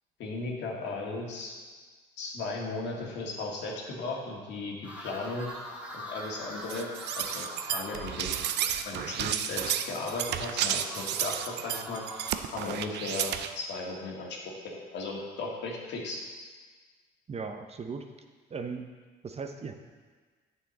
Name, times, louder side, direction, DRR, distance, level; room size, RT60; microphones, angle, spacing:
voice 1, 0.2-1.5 2.2-5.5 5.9-6.9 7.2-8.4 8.9-12.0 12.5-14.4 14.6-16.2, left 3 dB, 75° left, -2 dB, 1.9 m, -36 dB
sound 1, 4.8-12.4, equal, 5° right, 2.5 m, -44 dB
sound 2, 6.7-13.5, right 10 dB, 70° right, 0.5 m, -32 dB
voice 2, 17.3-18.0 18.5-18.8 19.2-19.7, right 5 dB, 35° right, 6 dB, 0.8 m, -37 dB
8.9 x 6.8 x 4.3 m, 1.4 s
cardioid pair, 90°, 18 cm